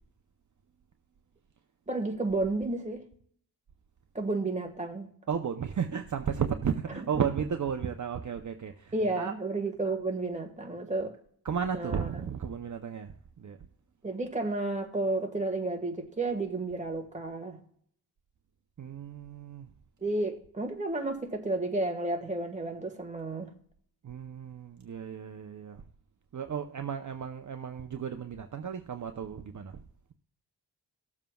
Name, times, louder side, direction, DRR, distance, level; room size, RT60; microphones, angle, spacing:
voice 1, 1.9-3.0 4.1-5.1 7.0-7.1 8.9-11.1 11.7-12.1 14.0-17.6 20.0-23.5, right 2 dB, 20° right, 1.6 m, -32 dB
voice 2, 5.3-9.3 11.4-13.6 18.8-19.7 24.0-25.8 26.3-29.8, right 7 dB, 50° right, 0.7 m, -34 dB
19.0 x 7.3 x 2.3 m
wide cardioid pair, 90°, 40 cm